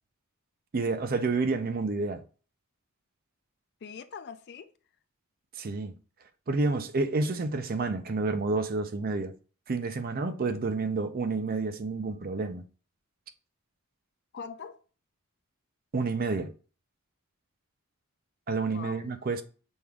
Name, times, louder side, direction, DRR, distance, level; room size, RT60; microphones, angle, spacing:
voice 1, 0.7-2.2 5.6-5.9 6.5-9.3 9.7-12.6 15.9-16.5 18.5-19.4, right 3 dB, 45° right, 0.5 m, -29 dB
voice 2, 3.8-4.7 10.4-10.6 14.3-14.8 18.6-19.1, left 6 dB, 50° left, 0.4 m, -43 dB
6.2 x 3.5 x 2.3 m
head